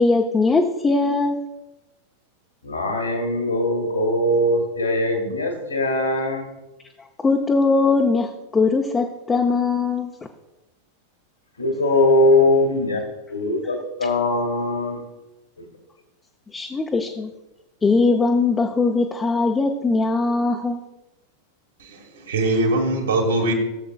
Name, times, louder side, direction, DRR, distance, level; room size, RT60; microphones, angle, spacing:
voice 1, 0.0-1.4 7.2-10.1 14.0-14.1 16.5-17.3 17.8-20.8, left 3 dB, 15° left, 0.7 m, -20 dB
voice 2, 2.6-6.5 11.6-13.0 13.3-15.0, left 1 dB, 80° left, 2.4 m, -21 dB
voice 3, 21.8-23.5, right 2 dB, 65° right, 2.1 m, -22 dB
17.0 x 7.3 x 2.4 m
figure-of-eight pair, 90°, 0 cm